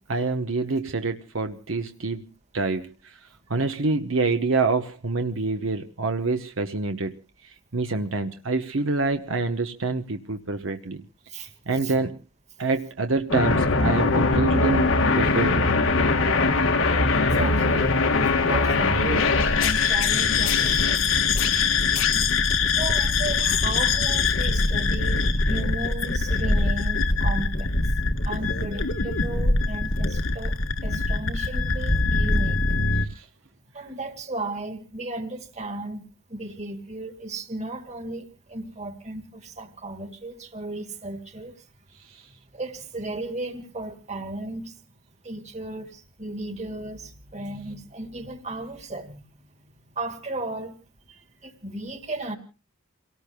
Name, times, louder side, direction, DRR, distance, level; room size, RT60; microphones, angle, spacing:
voice 1, 0.1-3.2 3.5-7.1 7.4-11.0 11.7-12.2 12.6-15.7 33.1-33.2 42.1-42.2, right 3 dB, 70° right, 7 dB, 1.0 m, -26 dB
sound 1, 13.3-33.1, left 3 dB, 70° left, 1.5 m, -22 dB
voice 2, 17.4-17.9 18.4-21.0 22.7-27.7 28.3-30.5 30.8-32.5 33.8-38.2 38.5-39.2 39.6-41.5 42.6-44.7 45.3-45.9 46.2-47.0 47.3-49.1 50.0-50.7 51.6-52.4, right 2 dB, 35° right, 7 dB, 2.2 m, -34 dB
29.0 x 18.5 x 2.2 m, 0.33 s
head